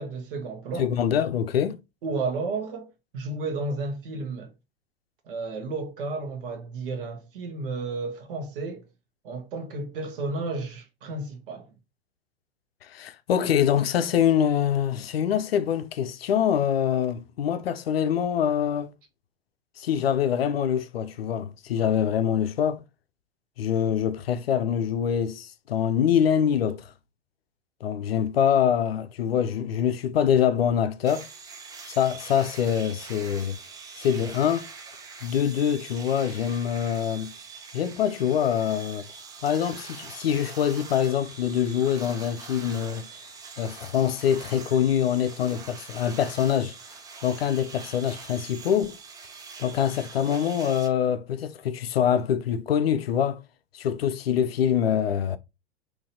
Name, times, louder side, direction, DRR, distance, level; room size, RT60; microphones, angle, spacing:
voice 1, 0.0-0.9 2.0-2.9 3.1-4.5 5.3-8.8 9.2-11.7, right 3 dB, 55° right, 1.1 m, -32 dB
voice 2, 0.8-1.8 12.8-18.9 19.8-22.8 23.6-26.9 27.8-31.3 31.9-33.6 34.0-34.6 35.2-37.3 37.7-39.1 39.4-43.1 43.6-46.8 47.2-48.9 49.6-53.4 53.7-55.4, left 9 dB, 65° left, 0.6 m, -24 dB
sound 1, 31.0-50.9, right 5 dB, 10° right, 0.4 m, -43 dB
3.9 x 2.8 x 2.7 m
figure-of-eight pair, 95°, 32 cm